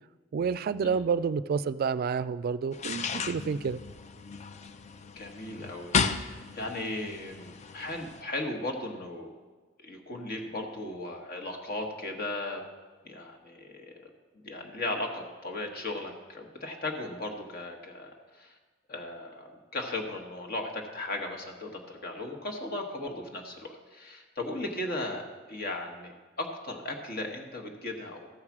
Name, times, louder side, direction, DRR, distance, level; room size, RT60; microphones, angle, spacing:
voice 1, 0.3-3.8, right 6 dB, 50° right, 16 dB, 0.3 m, -29 dB
sound 1, 2.7-8.2, left 5 dB, 35° left, 0.4 m, -34 dB
voice 2, 5.2-9.3 9.8-12.6 13.0-14.1 14.3-18.6 18.9-28.3, left 2 dB, 50° left, 2 dB, 1.3 m, -37 dB
14.0 x 4.8 x 7.2 m, 1.3 s
head